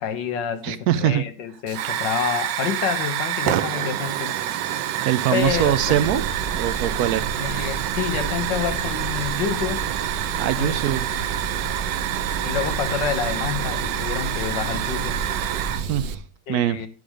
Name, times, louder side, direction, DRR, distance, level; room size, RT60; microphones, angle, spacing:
voice 1, 0.0-4.4 5.3-6.2 7.4-9.9 10.6-10.8 11.1-11.3 12.4-15.2 16.5-16.9, left 8 dB, 90° left, 1.7 m, -28 dB
voice 2, 0.6-1.2 5.0-6.2 6.5-7.3 10.4-11.1 15.7-16.2 16.5-16.8, right 11 dB, 70° right, 1.0 m, -22 dB
Hiss / Fire, 1.7-16.2, right 11 dB, 85° right, 1.3 m, -27 dB
sound 1, 5.4-16.2, right 4 dB, 35° right, 1.2 m, -32 dB
10.5 x 5.1 x 4.9 m
omnidirectional pair, 1.9 m